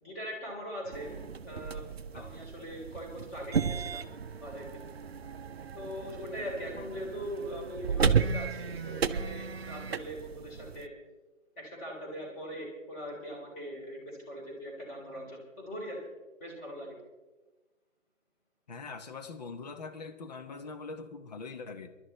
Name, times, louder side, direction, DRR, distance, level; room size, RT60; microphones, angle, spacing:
voice 1, 0.0-1.2 1.4-1.8 2.1-4.1 4.4-4.7 5.7-10.9 11.6-16.0 16.4-17.0, equal, 15° left, -1 dB, 3.5 m, -41 dB
sound 1, 0.9-10.9, right 6 dB, 50° right, 0.7 m, -34 dB
voice 2, 18.7-21.9, left 4 dB, 30° left, 8 dB, 1.1 m, -42 dB
28.5 x 12.0 x 3.1 m, 1.2 s
figure-of-eight pair, 140°, 39 cm